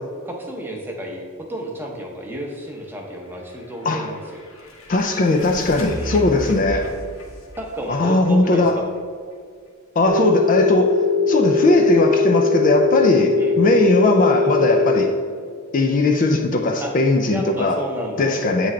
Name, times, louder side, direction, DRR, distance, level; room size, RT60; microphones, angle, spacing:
voice 1, 0.3-4.4 6.0-6.2 7.6-8.9 13.4-13.6 16.8-16.9 17.3-18.7, right 1 dB, 10° right, 0 dB, 0.7 m, -31 dB
sound 1, 3.2-9.0, equal, 70° left, 1.0 m, -35 dB
voice 2, 4.9-6.9 7.9-8.8 10.0-15.1 15.7-17.8 18.2-18.7, left 2 dB, 35° left, 4 dB, 0.3 m, -18 dB
Telephone, 10.1-15.1, left 4 dB, 45° right, 0.9 m, -20 dB
7.9 x 3.2 x 3.7 m, 2.1 s
head